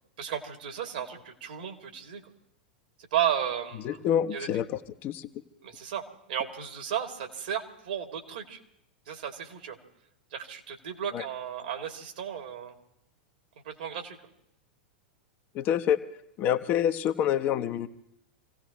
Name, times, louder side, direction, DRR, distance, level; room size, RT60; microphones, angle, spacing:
voice 1, 0.2-2.2 3.1-4.0 4.3-4.5 5.6-8.6 9.1-9.8 10.3-12.7 13.6-14.2, right 9 dB, 60° right, 3 dB, 2.5 m, -34 dB
voice 2, 3.8-4.7 5.0-5.3 11.1-11.2 15.5-16.0 16.4-17.9, left 9 dB, 35° left, 6 dB, 0.9 m, -26 dB
28.0 x 17.0 x 3.0 m, 0.76 s
figure-of-eight pair, 95°, 6 cm